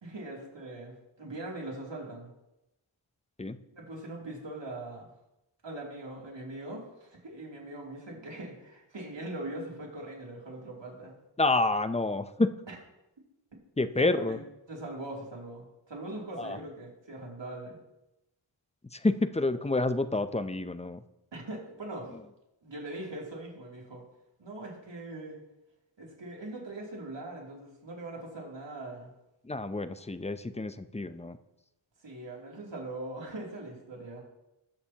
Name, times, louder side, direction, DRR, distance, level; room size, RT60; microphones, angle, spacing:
voice 1, 0.0-2.3 3.7-5.1 5.6-11.2 12.7-12.8 14.0-14.4 14.7-17.8 21.3-22.1 22.6-24.0 24.4-25.4 26.0-29.1 32.0-34.2, right 2 dB, 60° right, -2 dB, 2.9 m, -41 dB
voice 2, 11.4-12.5 13.8-14.4 16.4-16.6 18.9-21.0 29.4-31.4, left 2 dB, 15° left, 11 dB, 0.5 m, -28 dB
19.5 x 6.7 x 2.9 m, 0.91 s
wide cardioid pair, 60°, 49 cm